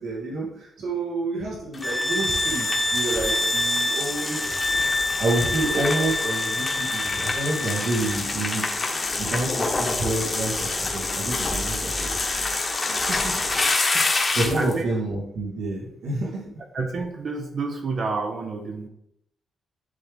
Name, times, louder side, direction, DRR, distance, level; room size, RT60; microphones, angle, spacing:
voice 1, 0.0-4.6 4.9-8.6 9.2-12.1 14.3-16.4, right 2 dB, 80° right, -5 dB, 1.9 m, -28 dB
sound 1, 1.7-14.7, left 3 dB, 25° left, 1.2 m, -28 dB
sound 2, 1.8-8.2, left 2 dB, 10° left, 0.6 m, -26 dB
voice 2, 13.0-13.5 13.9-14.1 14.5-14.9 16.7-18.9, right 3 dB, 50° right, 4 dB, 0.8 m, -29 dB
10.5 x 3.9 x 3.5 m, 0.77 s
wide cardioid pair, 155°, 0 cm